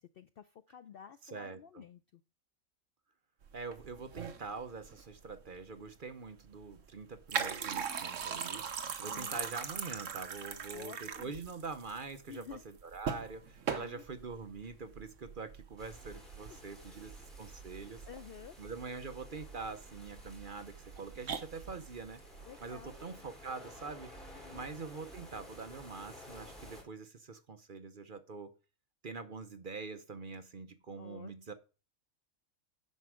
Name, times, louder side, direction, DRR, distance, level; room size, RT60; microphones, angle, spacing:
voice 1, 0.0-2.2 9.0-9.4 10.7-11.4 12.3-12.6 13.8-14.0 16.5-16.6 18.1-18.6 22.4-23.0 24.3-24.7 31.0-31.5, left 8 dB, 60° left, 0.6 m, -51 dB
voice 2, 1.2-1.8 3.5-12.5 12.8-17.1 17.4-18.0 18.6-22.2 22.6-24.2 24.5-28.5 29.0-31.5, right 4 dB, 45° right, 0.9 m, -44 dB
sound 1, 3.4-23.0, right 7 dB, 65° right, 1.3 m, -42 dB
sound 2, 15.8-26.8, equal, ahead, 3.4 m, -54 dB
9.7 x 4.6 x 6.3 m
omnidirectional pair, 1.4 m